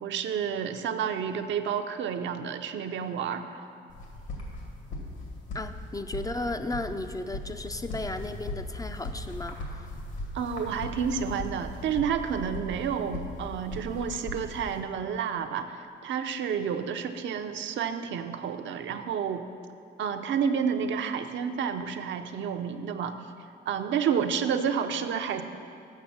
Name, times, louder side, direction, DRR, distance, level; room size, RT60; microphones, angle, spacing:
voice 1, 0.0-3.5 10.3-19.4 20.0-23.1 23.7-25.4, right 7 dB, 70° right, 7 dB, 0.6 m, -30 dB
sound 1, 3.9-14.8, left 1 dB, 75° left, 2.1 m, -39 dB
voice 2, 5.5-9.9, left 2 dB, 20° left, 8 dB, 0.4 m, -35 dB
7.4 x 6.1 x 7.2 m, 2.4 s
cardioid pair, 90°, 20 cm